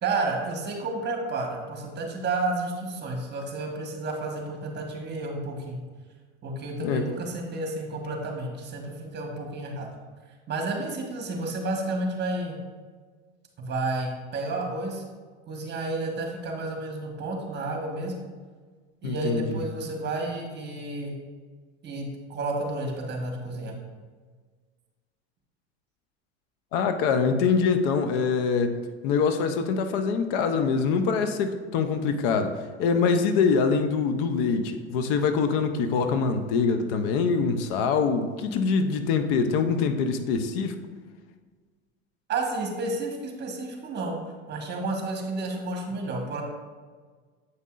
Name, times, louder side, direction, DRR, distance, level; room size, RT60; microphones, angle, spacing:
voice 1, 0.0-5.8 6.4-9.9 10.5-12.6 13.6-15.0 15.5-18.1 19.0-21.1 21.8-23.8 42.3-44.2 44.5-46.4, right 2 dB, 30° right, 1 dB, 1.4 m, -31 dB
voice 2, 19.0-19.6 26.7-28.8 29.0-40.8, left 5 dB, 65° left, 8 dB, 0.7 m, -24 dB
7.9 x 5.4 x 2.5 m, 1.5 s
supercardioid pair, 100°, 33 cm